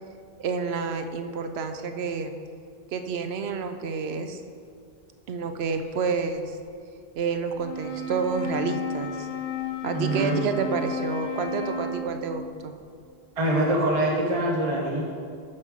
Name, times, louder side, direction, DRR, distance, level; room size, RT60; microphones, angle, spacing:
voice 1, 0.4-2.3 2.9-4.4 5.3-6.6 7.2-9.3 9.8-12.7, right 5 dB, 85° right, 7 dB, 0.9 m, -29 dB
Wind instrument woodwind instrument, 7.6-12.4, left 3 dB, 80° left, 1.1 m, -32 dB
voice 2, 9.9-10.4 13.4-15.0, right 1 dB, 35° right, -2 dB, 1.1 m, -24 dB
8.2 x 6.7 x 5.1 m, 2.3 s
omnidirectional pair, 1.0 m